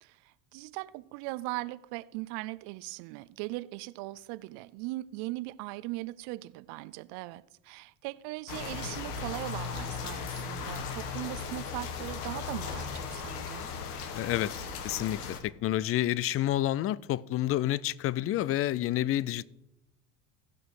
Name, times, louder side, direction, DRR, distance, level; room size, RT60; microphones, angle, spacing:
voice 1, 0.0-13.7, right 19 dB, 65° right, 0.6 m, -39 dB
sound 1, 8.5-15.4, left 6 dB, 90° left, 1.3 m, -37 dB
voice 2, 14.1-19.5, left 13 dB, 35° left, 0.4 m, -29 dB
15.5 x 6.0 x 4.8 m
supercardioid pair, 90°, 45 cm